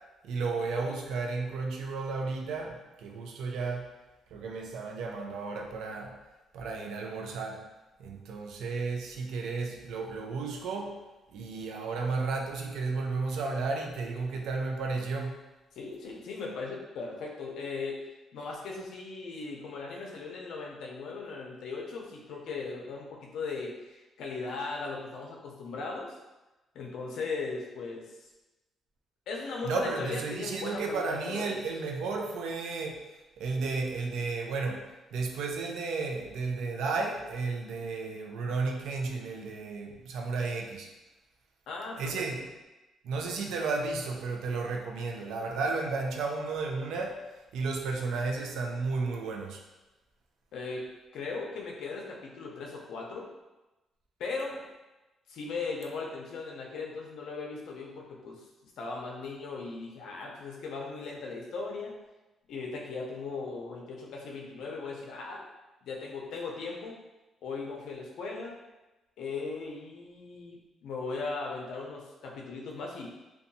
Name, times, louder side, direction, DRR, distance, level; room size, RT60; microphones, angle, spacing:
voice 1, 0.2-3.9 4.3-6.2 6.5-7.6 8.0-11.0 11.3-15.4 29.6-33.1 33.4-40.9 42.0-42.4 43.0-47.3 47.5-49.6, right 4 dB, 85° right, 2 dB, 0.4 m, -33 dB
voice 2, 15.8-18.0 18.3-26.1 26.7-28.3 29.3-31.6 41.7-42.2 50.5-50.8 51.1-53.3 54.2-54.6 55.3-61.9 62.5-65.4 65.8-67.0 67.4-68.6 69.2-73.1, left 4 dB, 75° left, -1 dB, 0.5 m, -38 dB
2.7 x 2.2 x 2.6 m, 1.1 s
cardioid pair, 145°, 0 cm